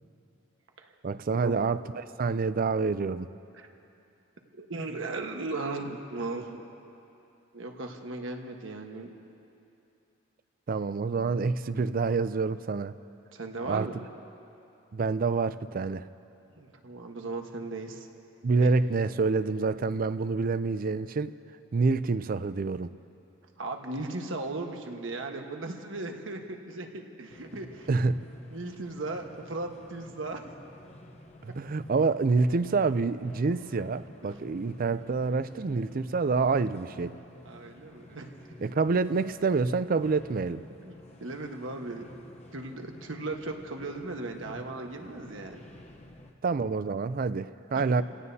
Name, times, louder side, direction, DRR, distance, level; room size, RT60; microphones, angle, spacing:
voice 1, 1.0-3.3 10.7-12.9 13.7-13.9 14.9-16.1 18.4-21.3 21.7-22.9 27.9-28.3 31.4-37.2 38.6-40.6 46.4-48.0, right 4 dB, 50° right, 14 dB, 0.4 m, -27 dB
voice 2, 4.6-6.6 7.5-9.1 13.3-13.9 16.6-18.1 18.6-18.7 23.6-28.1 28.5-30.5 37.4-38.3 40.8-42.0 42.5-45.6 47.7-47.8, right 2 dB, 85° right, 3 dB, 1.3 m, -37 dB
sound 1, 27.3-46.3, left 1 dB, 35° left, 0.9 m, -51 dB
29.5 x 17.0 x 2.8 m, 2.7 s
head